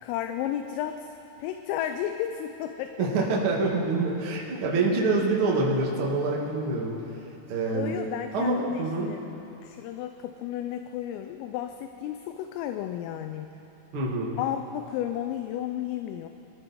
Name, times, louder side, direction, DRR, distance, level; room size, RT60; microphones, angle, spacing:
voice 1, 0.0-3.3 4.5-4.6 7.7-9.2 9.6-13.5 14.4-16.3, left 11 dB, 85° left, 7 dB, 3.2 m, -33 dB
voice 2, 3.0-6.9 7.5-7.9 8.3-9.1 13.9-14.3, right 3 dB, 75° right, -3 dB, 1.2 m, -26 dB
24.0 x 14.0 x 4.2 m, 2.9 s
omnidirectional pair, 6.0 m